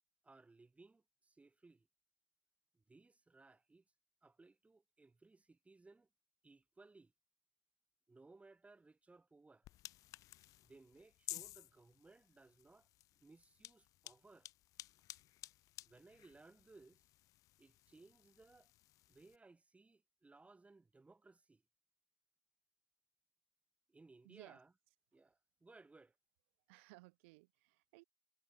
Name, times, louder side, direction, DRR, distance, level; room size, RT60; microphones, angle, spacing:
voice 1, 0.2-1.9 2.7-3.8 4.2-6.1 6.4-7.1 8.1-9.7 10.6-12.9 13.2-14.5 15.8-17.1 17.6-18.7 19.1-21.6 23.9-24.7 25.1-26.1, right 3 dB, 20° right, 7.0 m, -63 dB
sound 1, 9.6-19.4, left 16 dB, 50° left, 0.5 m, -55 dB
voice 2, 24.2-24.6 26.7-28.0, right 26 dB, 65° right, 4.4 m, -60 dB
figure-of-eight pair, 55°, 7 cm